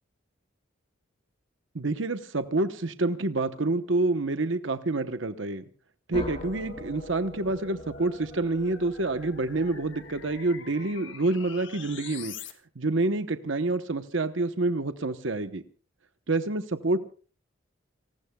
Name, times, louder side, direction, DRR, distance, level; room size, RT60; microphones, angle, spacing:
voice 1, 1.7-5.6 6.1-12.3 12.8-15.6 16.3-17.0, right 2 dB, 70° right, 9 dB, 1.0 m, -27 dB
sound 1, 6.1-10.8, left 1 dB, 30° left, 2.4 m, -43 dB
sound 2, 6.2-12.5, left 6 dB, 65° left, 1.8 m, -46 dB
29.5 x 19.5 x 2.3 m, 0.40 s
head